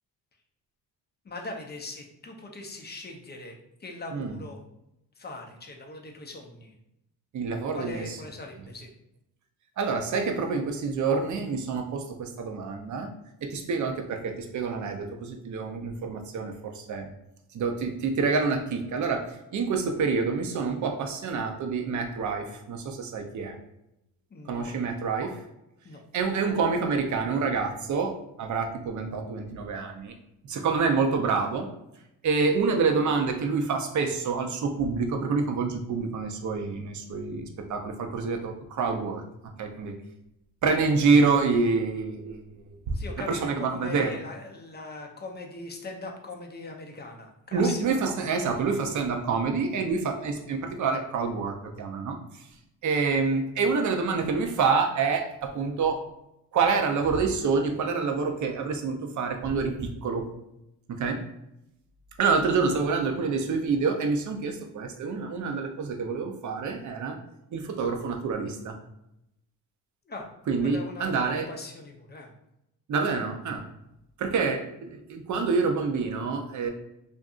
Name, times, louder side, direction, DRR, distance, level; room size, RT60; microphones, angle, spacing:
voice 1, 1.2-3.5 3.8-4.6 5.2-6.7 7.7-8.9 24.3-24.7 25.8-26.0 42.9-48.0 70.0-70.3 70.6-72.3, left 2 dB, 25° left, 2 dB, 0.4 m, -40 dB
voice 2, 7.3-8.0 9.8-13.1 13.4-17.1 17.5-19.3 19.5-23.6 24.5-25.4 26.1-30.1 30.5-31.7 32.2-39.2 39.6-40.0 40.6-43.0 43.3-44.1 47.5-52.5 52.8-56.0 56.5-60.3 60.9-61.2 62.2-67.2 67.5-68.7 70.5-71.5 72.9-73.6 74.2-76.7, right 4 dB, 45° right, 4 dB, 0.5 m, -27 dB
2.6 x 2.5 x 2.3 m, 0.85 s
cardioid pair, 85°, 42 cm